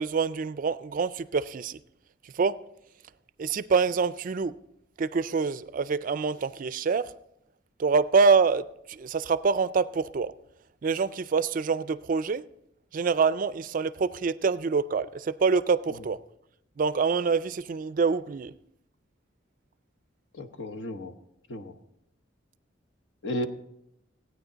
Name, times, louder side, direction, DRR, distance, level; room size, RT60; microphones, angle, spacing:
voice 1, 0.0-1.8 2.4-2.6 3.4-4.6 5.0-7.1 7.8-10.3 10.8-12.4 12.9-16.2 16.8-18.5, right 5 dB, 45° right, 0.4 m, -26 dB
voice 2, 20.3-21.1 21.5-21.7 23.2-23.5, left 1 dB, 65° left, 1.0 m, -33 dB
16.5 x 9.4 x 4.0 m
head